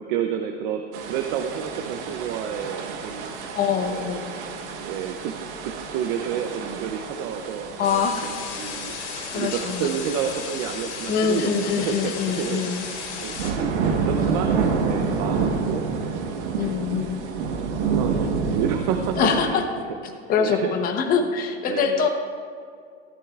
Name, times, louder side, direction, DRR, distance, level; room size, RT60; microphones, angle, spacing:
voice 1, 0.0-3.3 3.8-4.1 4.7-5.4 5.6-17.1 17.9-19.6 20.1-20.7 21.7-22.1, right 8 dB, 45° right, 6 dB, 0.6 m, -30 dB
sound 1, 0.9-19.4, right 5 dB, 80° right, 1.3 m, -29 dB
voice 2, 3.5-4.5 7.8-8.3 9.3-9.9 11.1-12.8 16.6-17.2 19.2-19.6 20.3-22.1, left 6 dB, 25° left, 5 dB, 0.9 m, -24 dB
sound 2, 7.8-13.5, left 6 dB, 80° left, 2.7 m, -35 dB
14.0 x 13.5 x 2.4 m, 2.2 s
supercardioid pair, 160°, 34 cm